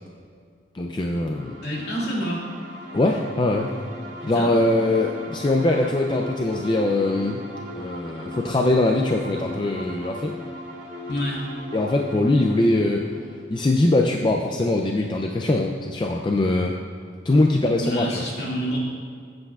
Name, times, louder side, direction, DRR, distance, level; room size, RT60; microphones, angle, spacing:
voice 1, 0.7-1.6 2.9-3.7 4.3-7.4 7.8-10.3 11.7-13.2 13.5-16.7 17.2-18.2, left 2 dB, 25° left, 1 dB, 0.4 m, -22 dB
sound 1, 1.3-14.7, equal, 85° right, 1.9 m, -39 dB
voice 2, 1.6-2.4 4.3-4.5 8.3-8.4 11.1-11.5 17.8-18.8, equal, 60° left, -5 dB, 2.3 m, -28 dB
15.5 x 7.8 x 2.4 m, 2.1 s
head